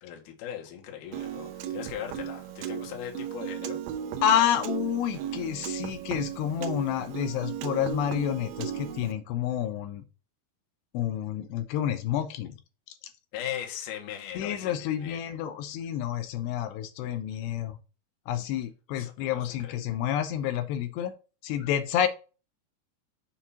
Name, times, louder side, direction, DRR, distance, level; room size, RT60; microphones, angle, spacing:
voice 1, 0.0-3.8 13.3-15.4 19.0-19.9, left 10 dB, 65° left, 2.3 m, -39 dB
Piano, 1.1-9.1, right 10 dB, 85° right, 2.1 m, -36 dB
voice 2, 4.2-10.0 10.9-12.6 12.9-13.1 14.4-17.8 18.3-21.1 21.4-22.1, left 10 dB, 85° left, 2.7 m, -29 dB
7.1 x 2.6 x 5.6 m
omnidirectional pair, 4.8 m